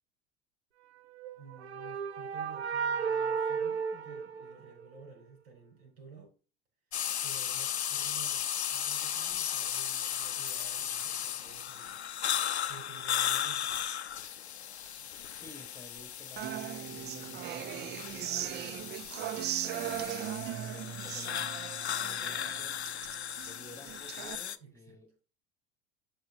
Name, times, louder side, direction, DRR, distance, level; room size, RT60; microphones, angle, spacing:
sound 1, 1.1-5.0, right 6 dB, 80° right, 0.7 m, -34 dB
voice 1, 1.4-6.3 7.2-12.4 12.7-13.8 24.6-25.0, right 5 dB, 65° right, 4.3 m, -53 dB
sound 2, 6.9-24.6, left 9 dB, 85° left, 0.6 m, -36 dB
voice 2, 15.3-18.6 19.2-21.5 22.0-22.8 23.4-25.3, left 2 dB, 10° left, 1.7 m, -53 dB
Human voice / Acoustic guitar, 16.4-24.3, right 12 dB, 35° right, 0.5 m, -38 dB
11.5 x 4.9 x 3.7 m
figure-of-eight pair, 70°, 32 cm